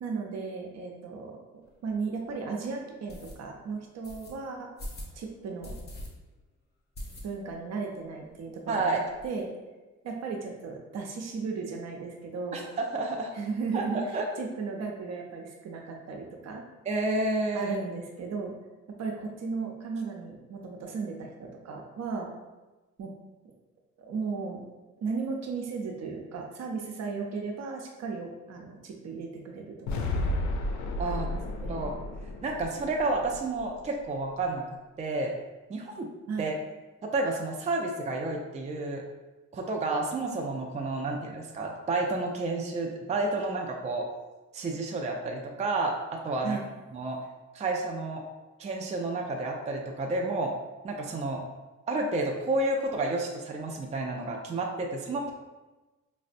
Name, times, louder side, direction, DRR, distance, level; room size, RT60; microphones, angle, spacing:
voice 1, 0.0-1.4 1.8-4.7 5.1-5.8 7.2-9.5 10.0-12.6 13.3-16.6 17.5-18.5 19.0-22.3 23.0-23.1 24.1-24.6 25.0-30.2 31.0-31.9 36.3-36.5 46.4-46.6, right 4 dB, 60° right, 1 dB, 0.7 m, -35 dB
sound 1, 1.7-1.8 2.3-2.4 3.1-3.4 4.0-4.3 4.8-5.1 5.6-6.1 6.4-6.5 6.9-7.6 7.9-8.0 8.3-8.4 8.6-9.3, left 1 dB, 35° left, 0.8 m, -41 dB
voice 2, 8.7-9.0 12.5-12.6 12.9-13.3 13.7-14.2 16.9-17.8 31.0-31.3 31.6-32.0 32.4-34.6 35.0-35.3 35.7-36.1 36.4-36.5 37.0-39.0 39.5-44.1 44.5-46.6 46.9-47.2 47.5-48.2 48.6-50.5 50.8-51.4 51.9-55.3, right 2 dB, 25° right, 1 dB, 0.4 m, -30 dB
sound 2, 29.9-34.0, left 1 dB, 70° left, 0.5 m, -33 dB
4.8 x 2.1 x 2.6 m, 1.1 s
cardioid pair, 90°, 30 cm